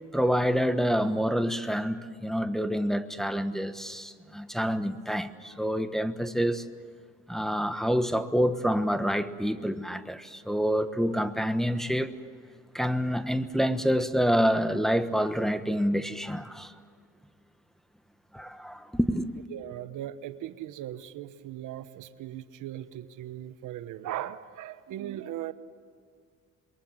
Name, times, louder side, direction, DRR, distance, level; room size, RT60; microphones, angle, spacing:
voice 1, 0.1-6.6 7.3-12.1 12.7-16.7 18.3-19.3, equal, ahead, 1.2 m, -27 dB
voice 2, 19.5-25.5, right 12 dB, 85° right, 1.1 m, -38 dB
27.0 x 22.0 x 7.4 m
cardioid pair, 90°, 30 cm